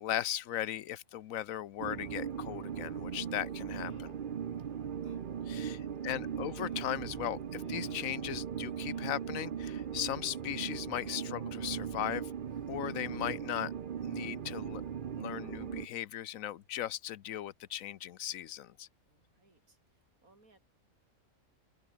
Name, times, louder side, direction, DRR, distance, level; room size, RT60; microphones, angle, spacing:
voice 1, 0.0-4.2 5.5-12.3 12.7-13.7 14.0-14.8 15.1-18.9, left 12 dB, 75° left, 1.1 m, -38 dB
sound 1, 1.8-15.9, right 8 dB, 45° right, 0.8 m, -39 dB
sound 2, 2.8-2.9 3.7-4.2 4.6-4.7 5.0-5.3 6.2-7.1 7.5-8.3 8.9-9.4 10.9-11.3 12.5-12.7 13.1-13.2, left 3 dB, 45° left, 2.6 m, -54 dB
voice 2, 4.5-5.2 19.0-20.6, right 2 dB, 90° right, 5.3 m, -68 dB
omnidirectional pair, 1.4 m